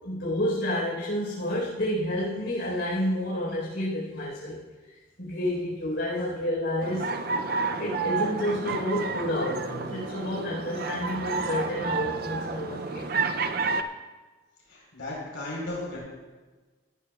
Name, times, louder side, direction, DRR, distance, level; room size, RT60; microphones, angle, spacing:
voice 1, 0.0-4.6 5.2-7.1 7.8-13.1, left 1 dB, 65° left, -5 dB, 4.2 m, -29 dB
sound 1, 6.8-13.8, right 4 dB, 50° right, 0.5 m, -30 dB
voice 2, 14.7-16.0, left 1 dB, 80° left, -4 dB, 4.2 m, -35 dB
18.0 x 11.5 x 2.4 m, 1.3 s
head